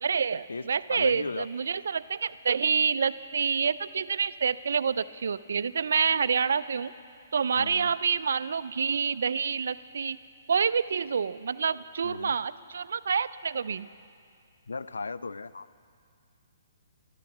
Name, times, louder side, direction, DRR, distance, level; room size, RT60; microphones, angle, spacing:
voice 1, 0.0-6.9 7.3-10.2 10.5-13.9, right 6 dB, 70° right, 16 dB, 0.4 m, -27 dB
voice 2, 0.9-1.5 7.6-8.0 12.0-12.4 14.7-15.7, left 3 dB, 85° left, 16 dB, 0.4 m, -36 dB
12.5 x 12.0 x 5.9 m, 2.3 s
hypercardioid pair, 135°, 0 cm